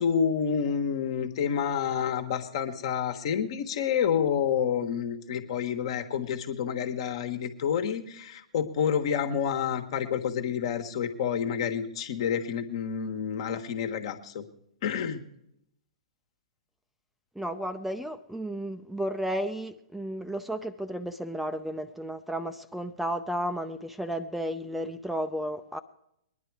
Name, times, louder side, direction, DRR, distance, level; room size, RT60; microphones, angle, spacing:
voice 1, 0.0-14.4 14.8-15.2, left 7 dB, 55° left, 1.4 m, -29 dB
voice 2, 17.4-25.8, equal, 5° right, 0.6 m, -33 dB
21.0 x 10.5 x 4.8 m
figure-of-eight pair, 110°, 3 cm